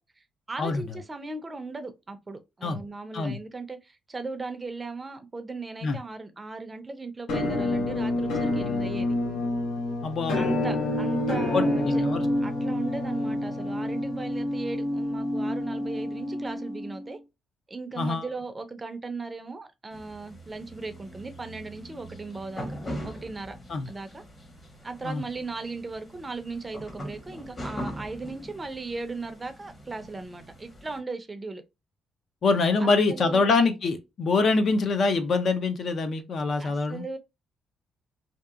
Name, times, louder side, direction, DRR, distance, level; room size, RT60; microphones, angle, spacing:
voice 1, 0.5-9.1 10.3-12.1 12.4-17.2 17.7-22.8 23.0-23.6 23.9-24.2 24.8-31.6 32.8-33.5 36.6-37.2, right 3 dB, 25° right, 0.5 m, -37 dB
Musical instrument, 7.3-17.1, left 1 dB, 80° left, 0.8 m, -28 dB
voice 2, 10.0-10.4 11.5-12.2 18.0-18.2 23.7-23.9 25.0-25.2 32.4-37.0, left 3 dB, 55° left, 0.5 m, -24 dB
sound 1, 19.9-31.0, equal, 30° left, 1.0 m, -41 dB
2.7 x 2.3 x 2.3 m
cardioid pair, 90°, 0 cm